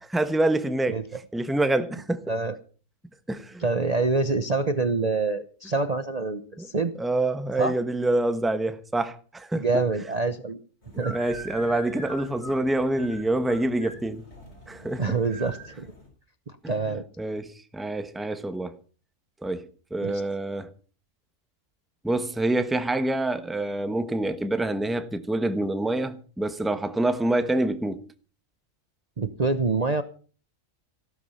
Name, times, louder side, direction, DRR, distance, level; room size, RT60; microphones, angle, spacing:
voice 1, 0.1-1.0 1.3-2.2 3.3-3.6 6.6-6.7 7.0-9.8 11.1-14.2 14.7-15.0 16.6-16.7 17.2-18.7 19.4-19.6 19.9-20.7 22.0-28.0, right 2 dB, ahead, 1.1 m, -26 dB
voice 2, 3.6-6.9 7.6-7.7 9.5-10.6 11.0-11.2 15.0-15.9 16.5-17.0 20.0-20.2 29.2-30.0, right 3 dB, 35° right, 0.9 m, -26 dB
sound 1, 10.8-16.1, equal, 55° left, 6.4 m, -43 dB
16.0 x 12.5 x 5.6 m
omnidirectional pair, 1.4 m